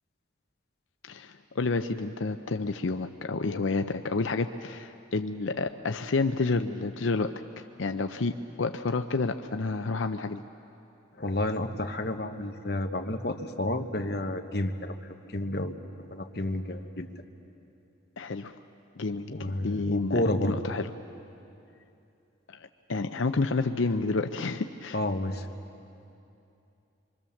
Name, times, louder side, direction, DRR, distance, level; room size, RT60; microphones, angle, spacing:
voice 1, 1.1-10.4 18.2-18.5 19.0-20.9 22.5-25.0, left 3 dB, 90° left, 7 dB, 0.6 m, -30 dB
voice 2, 11.2-14.9 15.3-17.1 19.3-20.6 24.9-25.5, left 1 dB, 55° left, 5 dB, 1.3 m, -30 dB
26.0 x 24.5 x 7.2 m, 2.7 s
head